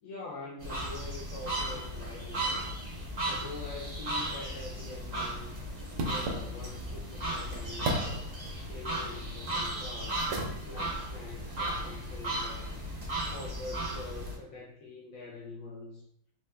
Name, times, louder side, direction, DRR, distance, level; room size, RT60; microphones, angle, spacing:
voice 1, 0.0-2.6 3.2-5.5 5.9-8.2 8.7-10.3 10.6-12.9 13.3-16.0, left 2 dB, 85° left, -4 dB, 0.7 m, -44 dB
sound 1, 0.6-14.4, right 1 dB, 35° right, 0.6 m, -36 dB
sound 2, 4.7-11.9, right 1 dB, 75° right, 1.4 m, -40 dB
4.2 x 2.3 x 3.2 m, 0.69 s
omnidirectional pair, 2.2 m